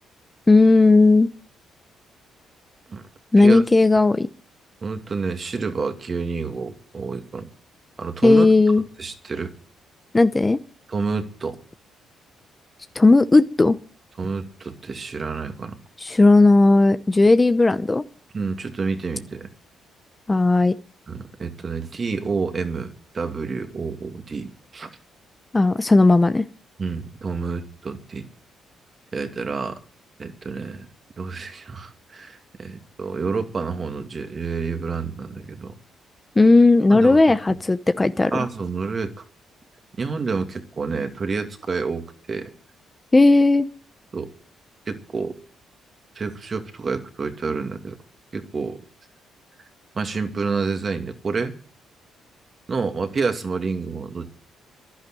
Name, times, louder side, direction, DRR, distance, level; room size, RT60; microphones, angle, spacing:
voice 1, 0.5-1.3 3.3-4.3 8.2-8.8 10.1-10.6 12.9-13.8 16.0-18.0 20.3-20.7 25.5-26.4 36.4-38.3 43.1-43.7, left 3 dB, 20° left, 12 dB, 0.8 m, -15 dB
voice 2, 4.8-7.5 8.0-8.5 9.0-9.5 10.9-11.6 14.2-15.8 18.3-19.5 21.1-24.9 26.8-28.3 29.1-29.8 30.2-30.9 31.2-35.7 36.9-37.2 38.3-39.2 40.0-42.5 44.1-44.3 44.9-45.3 46.1-48.0 48.3-48.8 49.9-51.5 52.7-54.3, right 4 dB, 40° right, 7 dB, 2.3 m, -28 dB
11.5 x 11.0 x 9.1 m, 0.43 s
cardioid pair, 90°, 0 cm